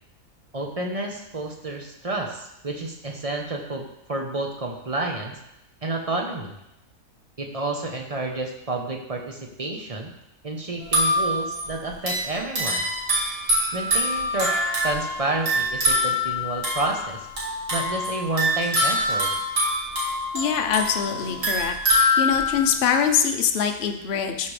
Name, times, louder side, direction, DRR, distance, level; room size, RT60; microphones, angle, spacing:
voice 1, 0.5-5.4 5.8-6.5 7.4-10.1 10.4-12.9 13.7-14.5 14.8-17.3 17.7-19.3, right 2 dB, 30° right, 1 dB, 0.9 m, -30 dB
sound 1, 10.8-22.7, left 1 dB, 55° right, 2.5 m, -24 dB
voice 2, 20.3-21.8 22.2-24.5, left 7 dB, 55° left, 5 dB, 0.9 m, -23 dB
13.0 x 5.1 x 3.3 m, 0.84 s
omnidirectional pair, 1.6 m